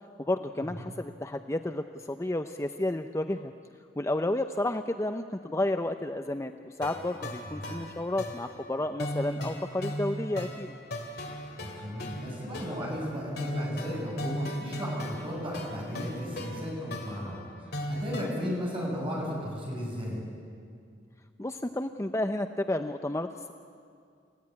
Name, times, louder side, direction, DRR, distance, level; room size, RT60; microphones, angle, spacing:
voice 1, 0.2-3.5 4.0-6.5 6.8-10.7 18.2-18.6 21.4-23.5, left 1 dB, 15° left, 7 dB, 0.6 m, -31 dB
sound 1, 6.8-18.3, equal, 60° left, 3.2 m, -38 dB
voice 2, 7.5-7.8 11.6-20.2, equal, 30° right, -3 dB, 8.0 m, -35 dB
29.0 x 16.0 x 9.6 m, 2.3 s
head